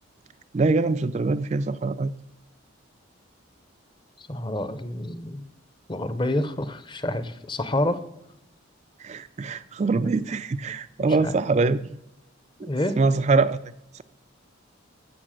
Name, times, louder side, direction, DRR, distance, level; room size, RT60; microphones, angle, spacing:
voice 1, 0.5-2.1 9.0-12.0 12.6-12.7 13.0-13.6 13.9-14.0, right 3 dB, 35° right, 12 dB, 0.3 m, -23 dB
voice 2, 4.2-5.4 5.9-8.0 10.0-10.1 11.0-11.4 12.6-13.0, left 1 dB, 25° left, 12 dB, 0.7 m, -28 dB
15.0 x 6.9 x 6.4 m, 0.84 s
head